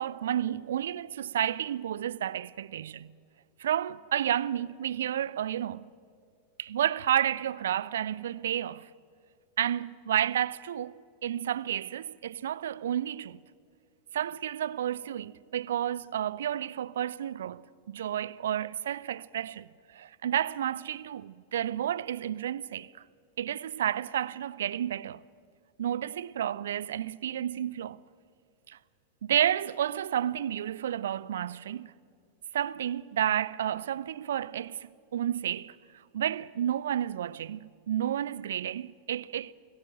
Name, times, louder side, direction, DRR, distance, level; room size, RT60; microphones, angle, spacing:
voice 1, 0.0-3.1 3.6-5.9 6.6-8.9 9.6-13.4 14.1-22.9 23.4-25.2 25.8-28.0 28.7-28.8 29.2-31.9 32.5-35.8 36.1-39.5, right 10 dB, 60° right, 0.5 m, -31 dB
29.0 x 18.5 x 7.5 m
figure-of-eight pair, 90°, 0 cm